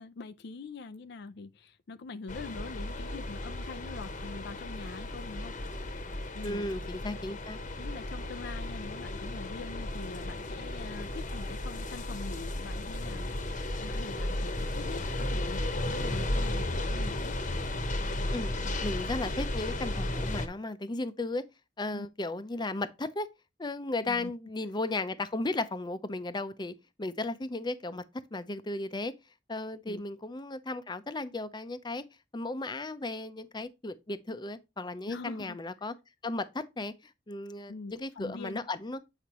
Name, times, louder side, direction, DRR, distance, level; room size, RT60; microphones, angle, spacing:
voice 1, 0.0-5.6 6.3-6.7 7.0-7.2 7.8-17.4 21.9-22.1 24.1-24.3 29.9-30.0 35.1-35.6 37.7-38.7, left 4 dB, 65° left, 0.4 m, -44 dB
sound 1, 2.3-20.5, left 1 dB, 45° left, 1.1 m, -34 dB
voice 2, 6.4-7.6 18.3-18.5 18.8-21.4 21.8-23.3 23.6-28.0 28.3-29.1 29.5-32.0 32.3-35.9 36.2-39.0, left 2 dB, 25° left, 0.6 m, -35 dB
8.4 x 4.9 x 3.0 m
head